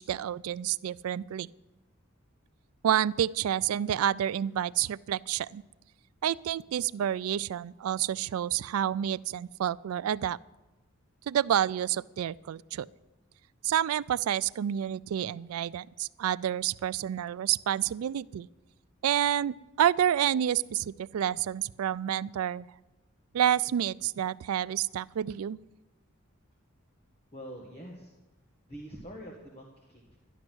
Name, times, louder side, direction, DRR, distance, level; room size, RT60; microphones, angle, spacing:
voice 1, 0.0-1.5 2.8-5.6 6.2-10.4 11.3-12.9 13.6-18.5 19.0-22.7 23.3-25.6, right 10 dB, 85° right, 19 dB, 0.3 m, -29 dB
voice 2, 27.3-28.1 28.7-30.2, equal, 30° left, -1 dB, 1.5 m, -45 dB
12.5 x 11.0 x 6.2 m, 1.1 s
head